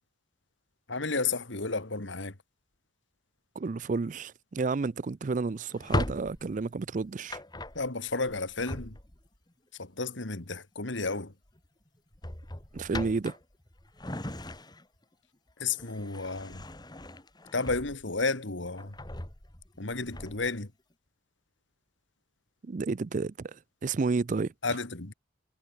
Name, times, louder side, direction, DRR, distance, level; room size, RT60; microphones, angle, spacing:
voice 1, 0.9-2.4 7.7-9.0 9.8-11.3 15.6-16.6 17.5-19.0 19.8-20.7 24.6-25.1, left 3 dB, 75° left, 2.2 m, -32 dB
voice 2, 3.6-7.4 12.7-13.4 22.6-24.5, right 4 dB, 40° right, 0.4 m, -31 dB
Drawer open or close, 5.7-9.4 10.8-11.1 11.5-11.7 12.1-15.0 15.5-18.2 18.6-20.6, left 1 dB, 20° left, 1.9 m, -38 dB
head